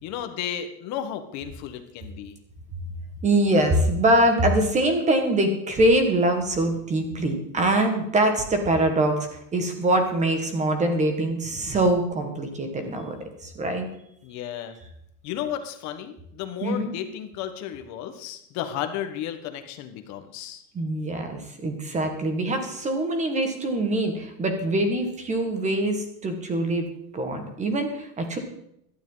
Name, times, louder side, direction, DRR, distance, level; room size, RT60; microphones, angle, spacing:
voice 1, 0.0-2.4 14.2-14.8 15.2-20.6, left 10 dB, 35° left, 8 dB, 1.4 m, -33 dB
voice 2, 3.2-13.9 16.6-16.9 20.7-26.8 27.1-28.4, right 1 dB, 15° right, 6 dB, 1.7 m, -23 dB
16.5 x 12.0 x 4.0 m, 0.75 s
supercardioid pair, 160°, 46 cm